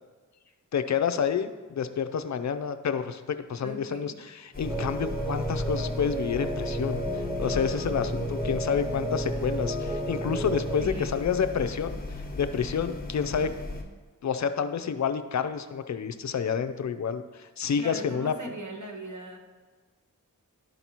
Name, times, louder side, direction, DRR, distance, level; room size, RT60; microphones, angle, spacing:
voice 1, 0.7-12.0 12.3-13.5 14.2-18.3, left 7 dB, 55° left, 10 dB, 0.5 m, -29 dB
voice 2, 3.6-4.2 10.8-11.3 17.8-19.4, right 2 dB, 55° right, 1 dB, 1.3 m, -39 dB
sound 1, 4.5-13.8, left 2 dB, 25° left, 1.3 m, -37 dB
sound 2, 4.6-10.8, right 1 dB, 10° right, 1.0 m, -32 dB
12.0 x 4.0 x 2.9 m, 1.4 s
cardioid pair, 45°, 35 cm